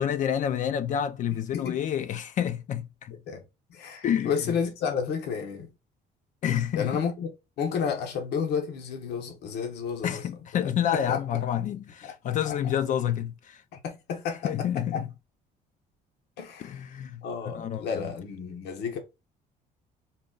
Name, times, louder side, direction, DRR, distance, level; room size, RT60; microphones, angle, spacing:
voice 1, 0.0-3.2 4.0-4.3 6.4-6.9 10.0-13.6 14.4-15.1 16.6-17.2 17.5-18.0, left 9 dB, 50° left, 0.4 m, -28 dB
voice 2, 1.3-1.8 3.3-3.4 3.7-5.7 6.7-7.3 7.6-10.2 10.5-11.2 12.0-12.1 12.4-12.8 13.8-14.7 14.9-15.0 16.4-16.9 17.2-19.0, left 6 dB, 75° left, 1.0 m, -31 dB
4.0 x 2.3 x 3.8 m
cardioid pair, 110°, 17 cm